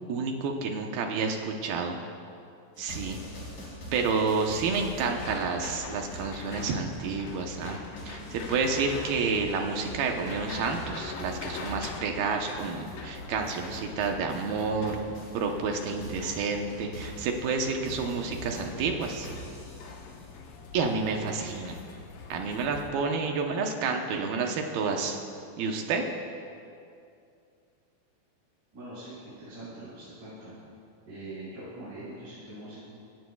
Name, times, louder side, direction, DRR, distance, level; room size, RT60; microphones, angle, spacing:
voice 1, 0.1-2.0 2.8-3.2 3.9-15.0 15.3-19.3 20.7-21.8 22.3-25.2 25.6-26.1, right 4 dB, 70° right, 3 dB, 2.5 m, -30 dB
sound 1, 2.8-15.5 15.7-20.1, equal, 50° left, 5.0 m, -44 dB
sound 2, 4.6-22.9, left 4 dB, 75° left, 3.1 m, -43 dB
voice 2, 28.7-30.5 31.0-32.8, right 1 dB, 45° right, -13 dB, 5.8 m, -43 dB
25.5 x 16.0 x 2.3 m, 2.5 s
omnidirectional pair, 5.1 m